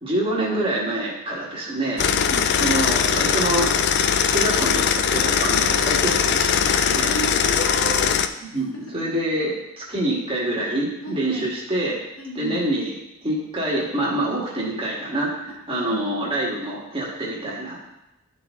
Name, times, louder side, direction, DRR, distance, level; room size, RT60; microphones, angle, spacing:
voice 1, 0.0-2.0 2.6-3.7 4.3-7.2 8.5-12.0 12.3-17.8, right 1 dB, 25° right, -5 dB, 1.7 m, -26 dB
sound 1, 2.0-8.3, left 7 dB, 50° left, 0.3 m, -20 dB
voice 2, 2.1-2.5 7.0-8.3 8.7-9.2 11.0-11.5 12.2-12.7 15.7-16.0, equal, 65° left, -2 dB, 1.6 m, -33 dB
11.5 x 4.1 x 3.6 m, 0.89 s
head